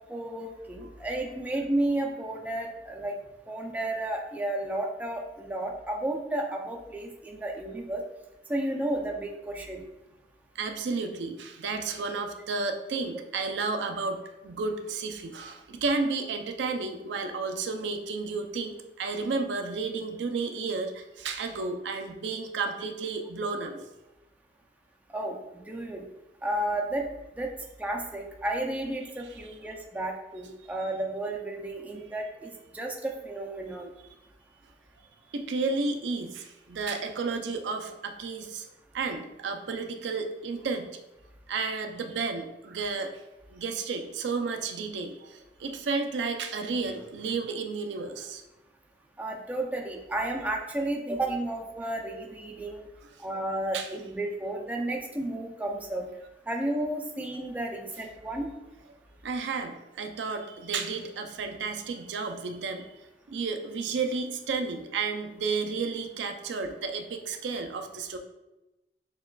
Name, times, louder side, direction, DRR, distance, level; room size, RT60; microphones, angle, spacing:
voice 1, 0.1-3.1 3.5-8.0 8.5-9.8 25.1-25.4 25.7-26.0 26.4-27.1 27.4-27.5 27.8-33.9 49.2-52.8 53.2-56.1 56.5-58.5, right 1 dB, 10° right, 0 dB, 0.4 m, -32 dB
voice 2, 10.6-23.9 29.2-29.4 30.8-30.9 35.3-38.7 38.9-40.9 41.5-43.1 43.5-48.4 53.0-53.1 53.7-53.9 59.2-63.0 63.3-68.2, right 4 dB, 85° right, 5 dB, 0.4 m, -32 dB
6.5 x 2.3 x 2.2 m, 0.99 s
head